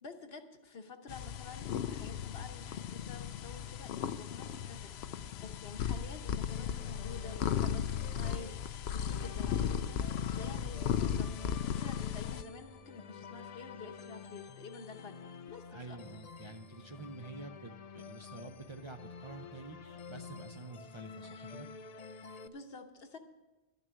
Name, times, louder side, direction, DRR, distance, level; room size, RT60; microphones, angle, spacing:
voice 1, 0.0-10.0 10.3-15.2 15.5-16.2 22.4-23.2, left 4 dB, 70° left, 6 dB, 1.3 m, -50 dB
sound 1, 1.1-12.4, left 8 dB, 90° left, 0.8 m, -36 dB
sound 2, 6.5-22.5, left 5 dB, 50° left, 0.5 m, -50 dB
voice 2, 15.7-21.7, right 3 dB, 35° right, 5 dB, 0.5 m, -48 dB
12.0 x 6.8 x 9.0 m, 1.1 s
omnidirectional pair, 1.0 m